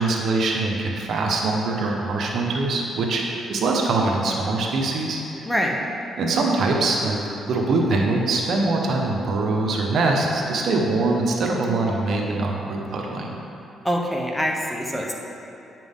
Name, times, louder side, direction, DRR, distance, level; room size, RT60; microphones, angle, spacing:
voice 1, 0.0-3.2 3.5-5.4 6.2-13.3, right 3 dB, 65° right, 0 dB, 1.0 m, -23 dB
voice 2, 5.4-5.8 13.8-15.1, equal, 10° left, -1 dB, 1.0 m, -24 dB
9.0 x 6.1 x 3.7 m, 2.7 s
cardioid pair, 90°, 0 cm